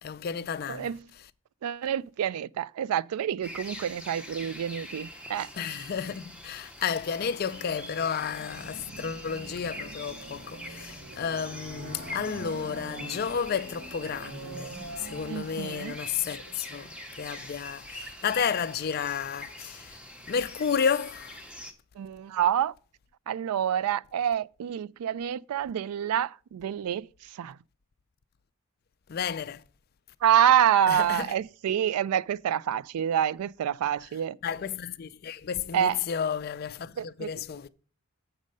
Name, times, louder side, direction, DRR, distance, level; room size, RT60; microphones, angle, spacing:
voice 1, 0.0-0.9 5.5-20.0 20.3-21.4 29.1-29.6 30.9-31.3 34.4-37.7, left 7 dB, 45° left, 0.3 m, -32 dB
voice 2, 0.7-1.1 1.6-5.5 15.3-16.0 22.0-22.7 23.3-27.6 30.2-34.4 35.7-36.0 37.0-37.3, right 9 dB, 90° right, 0.3 m, -27 dB
sound 1, 3.4-21.7, left 1 dB, 5° right, 0.7 m, -44 dB
sound 2, 7.0-17.1, right 2 dB, 60° right, 1.2 m, -45 dB
7.2 x 6.4 x 5.3 m
head